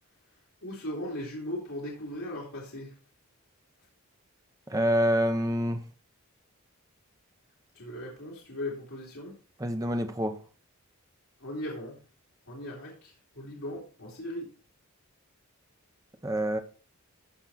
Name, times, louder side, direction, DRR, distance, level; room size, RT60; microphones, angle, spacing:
voice 1, 0.6-2.9 7.7-9.4 11.4-12.0 12.5-14.5, left 1 dB, 70° left, 3.0 m, -38 dB
voice 2, 4.7-5.8 9.6-10.4 16.2-16.6, equal, 15° right, 0.9 m, -26 dB
14.5 x 5.4 x 4.2 m
head